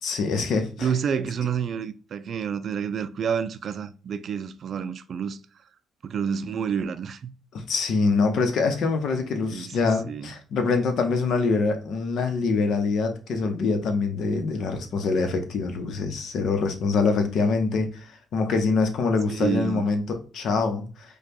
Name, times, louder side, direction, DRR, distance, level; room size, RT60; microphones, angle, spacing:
voice 1, 0.0-0.9 7.5-21.2, left 4 dB, 70° left, 0.8 m, -25 dB
voice 2, 0.8-5.4 6.0-7.3 9.5-9.8 10.0-10.3 19.3-19.9, right 7 dB, 55° right, 0.4 m, -29 dB
4.9 x 2.3 x 2.8 m
cardioid pair, 90°, 0 cm